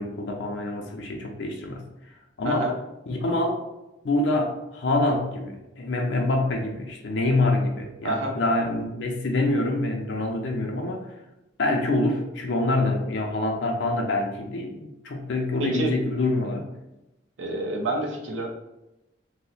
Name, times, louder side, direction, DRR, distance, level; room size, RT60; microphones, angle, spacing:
voice 1, 0.0-1.8 2.4-2.7 3.1-3.6 4.0-11.1 11.6-16.7, left 2 dB, 70° left, 1 dB, 0.5 m, -26 dB
voice 2, 15.6-15.9 17.4-18.5, right 2 dB, 85° right, 0 dB, 0.6 m, -28 dB
2.8 x 2.1 x 3.9 m, 0.95 s
head